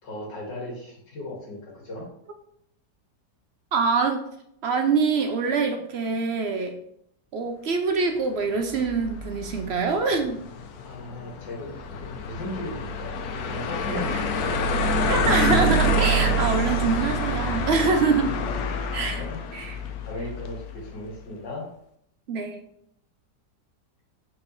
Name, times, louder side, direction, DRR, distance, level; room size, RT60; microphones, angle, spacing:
voice 1, 0.0-2.0 10.8-14.6 18.3-18.5 18.9-19.4 20.0-21.7, left 1 dB, 85° left, -3 dB, 2.6 m, -37 dB
voice 2, 3.7-4.3 4.6-6.8 7.3-10.4 15.0-18.4 18.9-19.2 19.5-19.8 22.3-22.6, right 5 dB, 70° right, 5 dB, 0.6 m, -24 dB
sound 1, 8.7-20.9, equal, 65° left, 1.1 m, -27 dB
6.9 x 4.8 x 3.1 m, 0.72 s
omnidirectional pair, 1.8 m